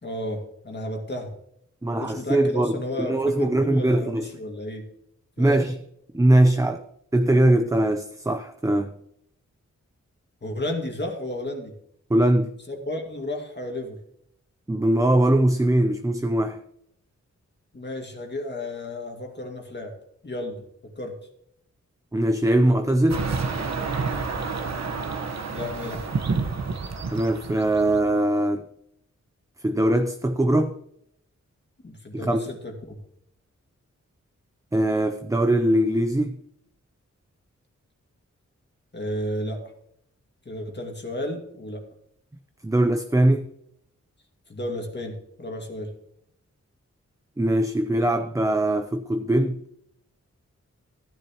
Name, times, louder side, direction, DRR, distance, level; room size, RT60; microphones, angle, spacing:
voice 1, 0.0-1.3 1.9-4.8 5.4-5.7 10.4-11.7 12.7-14.0 17.7-19.9 20.2-20.6 21.0-21.2 25.5-26.1 31.8-33.0 38.9-39.6 40.5-41.8 44.5-45.9, left 1 dB, 35° left, 1 dB, 2.1 m, -32 dB
voice 2, 1.8-2.8 3.1-4.3 5.4-5.8 6.1-6.8 7.1-8.9 12.1-12.5 14.7-16.6 22.1-23.2 27.1-28.6 29.6-30.8 32.1-32.4 34.7-36.4 42.6-43.5 47.4-49.6, right 1 dB, 10° right, 7 dB, 0.6 m, -21 dB
sound 1, 23.1-28.1, right 4 dB, 65° right, 1.2 m, -29 dB
14.5 x 10.0 x 3.0 m, 0.73 s
wide cardioid pair, 140°, 29 cm